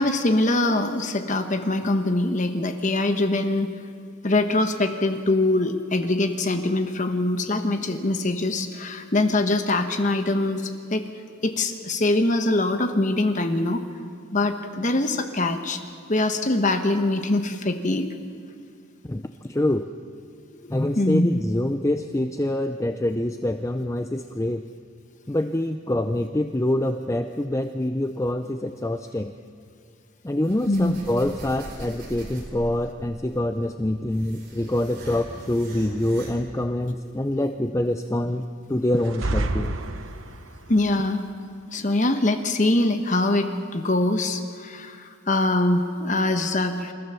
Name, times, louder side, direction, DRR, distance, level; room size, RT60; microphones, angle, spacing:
voice 1, 0.0-3.7 4.2-11.0 11.4-13.8 14.3-15.8 16.1-18.1 20.6-21.4 30.6-30.9 40.7-41.3 41.7-46.9, left 2 dB, 35° left, 7 dB, 1.0 m, -23 dB
voice 2, 19.0-19.9 20.7-24.6 25.3-29.3 30.2-39.8, left 1 dB, 15° left, 7 dB, 0.5 m, -25 dB
sound 1, 30.4-32.8 33.7-36.3, right 1 dB, 45° right, 4.8 m, -41 dB
sound 2, 39.0-40.6, right 2 dB, 75° right, 1.0 m, -28 dB
28.0 x 14.5 x 6.9 m, 2.2 s
head